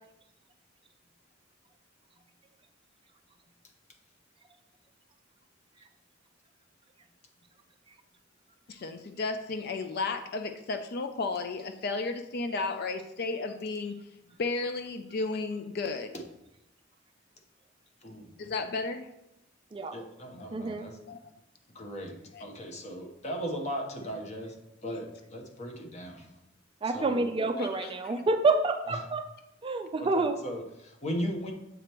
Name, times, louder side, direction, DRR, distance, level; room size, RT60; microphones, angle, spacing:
voice 1, 8.7-13.9 14.4-16.1 18.4-19.1 20.4-20.5 21.1-21.2 22.3-22.4 27.6-28.1, left 3 dB, 50° left, 7 dB, 0.4 m, -33 dB
voice 2, 19.9-21.0 21.7-24.6 24.8-26.3 26.8-27.3 28.9-29.0 30.0-31.5, equal, 35° left, 2 dB, 0.9 m, -37 dB
voice 3, 20.5-20.9 26.8-29.2 29.6-30.4, right 3 dB, 25° right, 7 dB, 0.4 m, -28 dB
7.7 x 5.0 x 3.0 m, 0.86 s
head